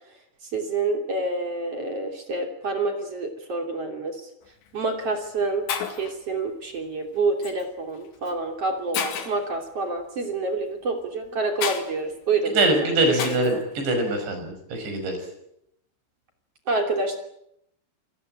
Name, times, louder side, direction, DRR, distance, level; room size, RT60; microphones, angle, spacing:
voice 1, 0.5-4.3 4.7-5.7 6.0-13.6 16.7-17.2, right 3 dB, 35° right, 4 dB, 3.5 m, -28 dB
Shatter, 4.5-4.7 5.4-5.5 5.7-6.1 7.4-7.6 8.3-8.4 8.9-9.5 11.6-11.9 13.2-13.6, left 8 dB, 75° left, 4.4 m, -30 dB
voice 2, 12.6-15.2, right 2 dB, 70° right, 6 dB, 7.9 m, -23 dB
27.0 x 19.5 x 8.9 m, 0.78 s
omnidirectional pair, 5.3 m